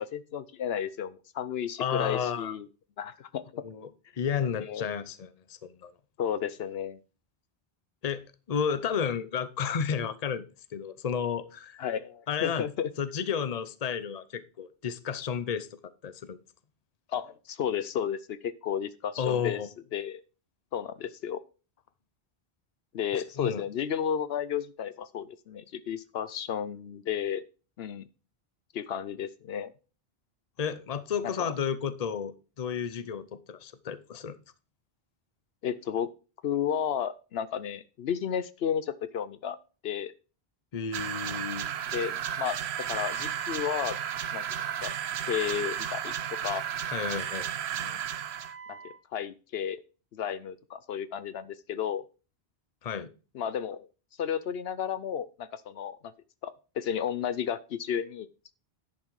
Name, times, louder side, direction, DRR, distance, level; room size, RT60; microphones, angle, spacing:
voice 1, 0.1-2.7 3.0-3.4 4.6-4.8 6.2-7.0 11.8-12.9 17.1-19.6 19.9-20.2 20.7-21.4 22.9-27.4 27.8-28.1 28.7-29.7 31.2-31.5 35.6-36.1 36.4-39.6 39.8-40.1 41.9-42.6 42.9-44.0 44.3-44.4 44.8-44.9 45.3-46.1 46.4-46.7 47.8-48.0 48.7-49.8 50.1-52.0 53.3-53.9 54.2-56.0 56.4-58.3, left 8 dB, 75° left, 15 dB, 0.9 m, -32 dB
voice 2, 1.8-2.5 3.6-3.9 4.2-5.9 8.0-10.5 10.7-11.8 12.3-12.7 13.0-15.7 16.0-16.4 19.2-19.7 23.1-23.6 30.6-34.4 40.7-41.7 46.9-47.5 52.8-53.1, left 7 dB, 40° left, 13 dB, 0.8 m, -32 dB
sound 1, 40.9-48.5, right 9 dB, 85° right, 0.9 m, -33 dB
Wind instrument woodwind instrument, 42.8-49.0, right 5 dB, 60° right, 1.2 m, -46 dB
10.5 x 6.2 x 4.7 m, 0.34 s
omnidirectional pair, 1.1 m